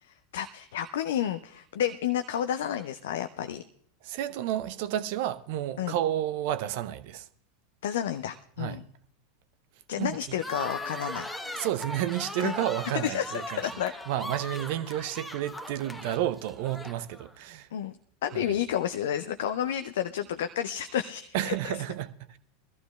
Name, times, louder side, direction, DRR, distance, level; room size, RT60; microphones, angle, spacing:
voice 1, 0.0-3.6 5.8-6.0 7.8-8.8 9.9-11.3 12.4-12.5 12.9-13.9 17.7-18.0 18.2-21.7, left 10 dB, 65° left, 0.4 m, -31 dB
voice 2, 4.0-7.3 8.6-8.8 10.0-10.2 11.5-13.6 14.1-17.7 18.3-18.6 21.3-22.4, right 12 dB, 55° right, 0.6 m, -31 dB
sound 1, 10.4-17.3, left 1 dB, 5° left, 1.0 m, -39 dB
22.0 x 14.0 x 2.3 m
figure-of-eight pair, 85°, 0 cm